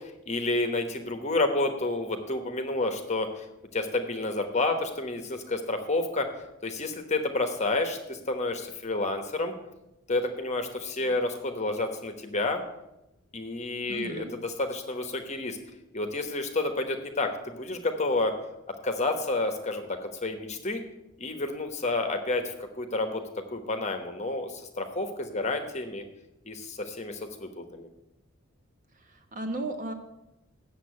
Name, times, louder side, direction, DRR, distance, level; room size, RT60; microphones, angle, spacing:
voice 1, 0.0-3.5 3.7-6.3 6.6-9.5 10.1-12.6 13.3-15.6 15.9-18.4 18.8-20.8 21.2-23.2 23.5-26.0 26.4-27.9, left 2 dB, 30° left, 6 dB, 1.1 m, -30 dB
voice 2, 13.8-14.3 28.9-29.9, right 1 dB, 40° right, 4 dB, 1.2 m, -35 dB
8.4 x 7.2 x 8.3 m, 0.90 s
head